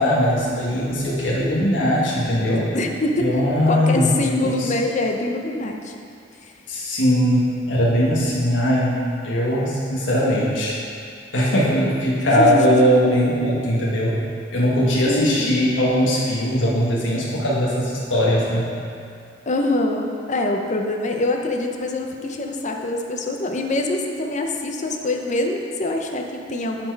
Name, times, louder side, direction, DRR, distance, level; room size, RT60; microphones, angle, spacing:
voice 1, 0.0-2.6 3.2-4.7 6.7-10.8 11.3-14.2 14.5-18.7, equal, 90° left, -6 dB, 1.4 m, -20 dB
voice 2, 2.4-3.3 3.7-5.9 12.4-12.8 15.1-15.7 19.5-26.9, left 2 dB, 40° left, 3 dB, 0.7 m, -24 dB
12.0 x 4.4 x 4.6 m, 2.3 s
head